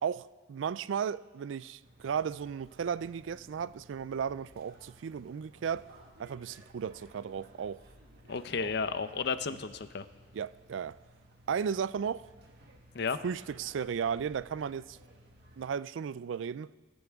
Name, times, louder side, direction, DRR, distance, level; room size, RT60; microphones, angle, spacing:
voice 1, 0.0-5.9 6.2-7.8 8.6-8.7 10.3-11.0 11.5-12.3 13.2-15.0 15.6-16.7, right 7 dB, 70° right, 0.4 m, -35 dB
sound 1, 1.8-15.7, right 1 dB, 55° right, 1.9 m, -57 dB
voice 2, 8.3-10.1 12.9-13.2, left 5 dB, 60° left, 0.7 m, -33 dB
23.5 x 13.5 x 3.6 m
head